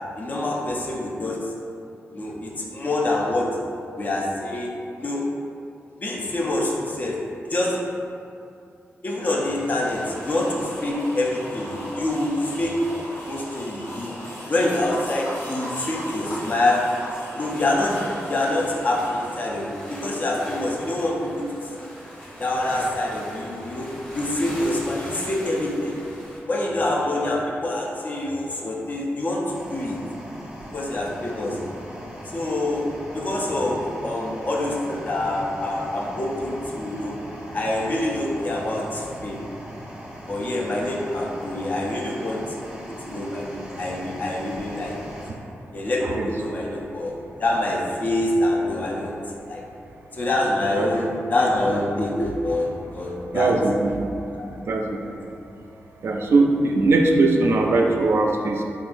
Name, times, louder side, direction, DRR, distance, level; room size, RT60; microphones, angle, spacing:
voice 1, 0.2-1.4 2.1-3.5 4.0-4.7 5.0-5.3 6.0-7.2 7.4-7.8 9.0-12.8 13.2-14.1 14.5-16.8 17.3-21.9 22.4-26.0 26.5-29.4 29.7-30.0 30.7-31.7 32.2-32.9 33.1-37.2 37.5-39.4 40.3-42.4 42.7-45.0 45.7-47.1 47.4-49.1 49.5-49.6 50.1-53.5 54.3-54.6 55.0-55.1, left 1 dB, 35° left, -2 dB, 0.5 m, -26 dB
sound 1, 9.2-26.4, equal, 15° left, 1.0 m, -42 dB
sound 2, 9.6-19.7, equal, 70° left, 1.2 m, -37 dB
sound 3, 29.5-45.3, equal, 5° right, 0.7 m, -39 dB
voice 2, 53.3-54.1 54.7-55.2 56.0-58.6, right 3 dB, 60° right, 1 dB, 0.3 m, -20 dB
3.7 x 3.7 x 2.5 m, 2.6 s
wide cardioid pair, 145°, 5 cm